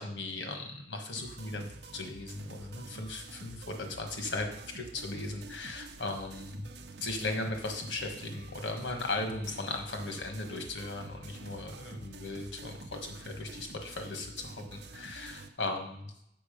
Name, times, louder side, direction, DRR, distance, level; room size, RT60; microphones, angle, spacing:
voice 1, 0.0-1.7 1.9-4.5 4.7-6.7 7.0-16.1, left 2 dB, 90° left, 4 dB, 1.3 m, -37 dB
sound 1, 1.2-15.5, right 3 dB, 70° right, 0.7 m, -48 dB
7.0 x 6.2 x 5.1 m, 0.74 s
head